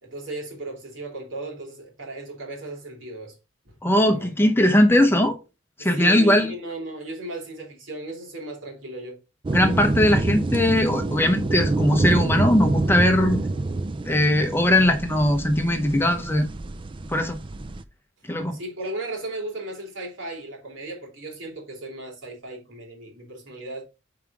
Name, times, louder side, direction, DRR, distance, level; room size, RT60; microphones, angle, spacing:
voice 1, 0.0-3.4 3.6-3.7 4.0-4.4 5.8-9.2 9.7-10.1 18.5-23.8, right 2 dB, 70° right, 2.9 m, -36 dB
voice 2, 3.8-5.4 5.8-6.5 9.5-13.4 14.1-16.5 17.1-17.4 18.3-18.6, left 1 dB, 10° left, 0.7 m, -20 dB
sound 1, 9.4-17.8, right 2 dB, 25° right, 0.4 m, -27 dB
5.6 x 4.8 x 4.8 m
head